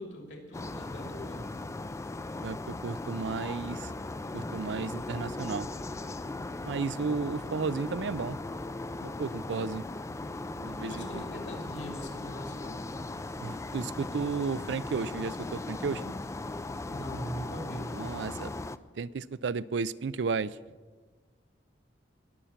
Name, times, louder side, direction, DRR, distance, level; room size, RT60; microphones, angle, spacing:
voice 1, 0.0-1.5 10.9-13.0 16.9-17.9, equal, 65° left, 2 dB, 2.9 m, -41 dB
sound 1, 0.5-18.8, left 2 dB, 15° left, 0.3 m, -38 dB
voice 2, 2.4-3.9 4.3-5.7 6.6-8.4 9.0-9.8 10.6-11.2 13.4-16.1 17.9-18.5 19.0-20.6, right 5 dB, 70° right, 18 dB, 0.4 m, -33 dB
20.5 x 7.0 x 7.3 m, 1.4 s
head